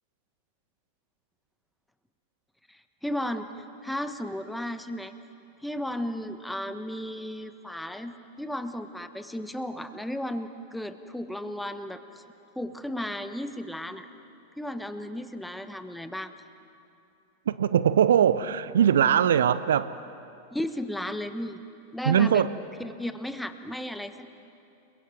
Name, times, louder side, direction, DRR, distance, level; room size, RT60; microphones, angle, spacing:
voice 1, 2.7-3.5 3.8-5.1 5.6-12.2 12.5-14.1 14.6-16.3 20.5-21.6 21.9-22.4 22.8-24.3, left 1 dB, 5° left, 1.3 m, -34 dB
voice 2, 17.5-19.9 22.0-22.5, right 9 dB, 65° right, 0.6 m, -21 dB
29.5 x 22.5 x 7.8 m
figure-of-eight pair, 90°, 0 cm